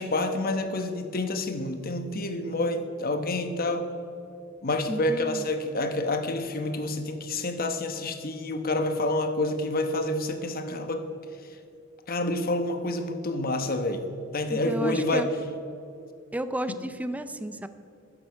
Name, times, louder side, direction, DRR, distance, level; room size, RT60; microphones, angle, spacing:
voice 1, 0.0-3.9 4.6-11.1 12.1-14.1 14.3-15.3, left 2 dB, 50° left, 8 dB, 1.0 m, -28 dB
voice 2, 4.9-5.5 14.5-15.3 16.3-17.7, right 1 dB, 10° right, 11 dB, 0.5 m, -32 dB
13.0 x 10.0 x 4.6 m, 2.7 s
head